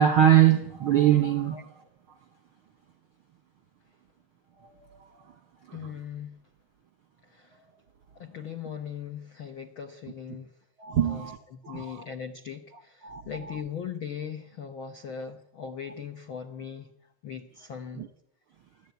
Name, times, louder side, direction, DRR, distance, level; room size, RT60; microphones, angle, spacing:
voice 1, 0.0-1.7 4.6-5.3 5.7-5.9 10.8-11.4 11.6-12.0 13.0-13.6 17.9-18.1, right 10 dB, 60° right, 1.4 m, -23 dB
voice 2, 5.7-6.4 7.3-7.6 8.1-10.5 11.0-16.9 17.2-18.0, left 7 dB, 70° left, 1.2 m, -39 dB
29.0 x 11.5 x 9.4 m
omnidirectional pair, 4.1 m